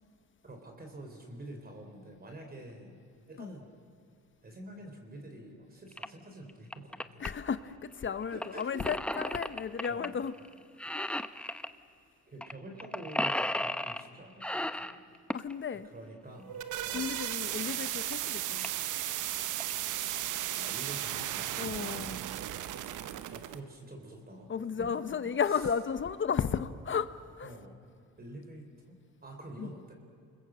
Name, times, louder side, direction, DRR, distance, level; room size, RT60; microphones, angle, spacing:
voice 1, 0.4-2.9 3.3-3.7 4.4-7.2 8.3-9.3 9.8-10.2 12.3-15.0 15.9-17.2 20.5-21.8 23.3-25.2 25.5-25.6 27.4-27.7 28.2-29.0 29.2-29.9, right 1 dB, 30° right, 3 dB, 4.1 m, -47 dB
sound 1, 5.9-6.1 6.5-7.3 8.4-10.1 10.4-10.5 10.8-11.7 12.4-12.5 12.8-14.1 14.4-15.5 17.2-17.3 17.8-17.9 18.1-18.2 18.6-18.9 19.4-19.7, left 1 dB, 5° left, 0.8 m, -34 dB
voice 2, 7.2-10.3 10.9-11.1 15.3-15.9 16.9-18.7 21.6-22.2 24.5-27.5 29.6-29.7, left 6 dB, 40° left, 13 dB, 0.9 m, -34 dB
sound 2, 16.3-23.6, right 12 dB, 80° right, 1.0 m, -35 dB
29.0 x 21.0 x 7.7 m, 2.3 s
cardioid pair, 90°, 30 cm